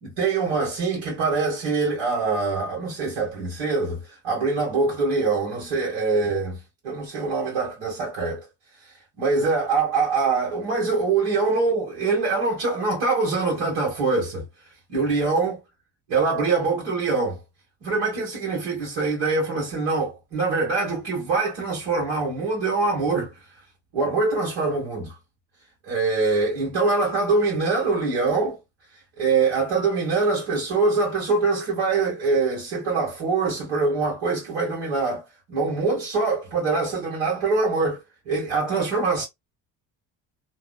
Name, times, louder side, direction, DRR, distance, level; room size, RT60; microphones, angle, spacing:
voice 1, 0.0-8.5 9.2-14.5 14.9-15.6 16.1-17.4 17.8-23.3 23.9-25.1 25.8-28.6 29.2-39.2, right 4 dB, 60° right, 1.5 m, -24 dB
3.0 x 2.1 x 2.3 m
figure-of-eight pair, 50°, 50 cm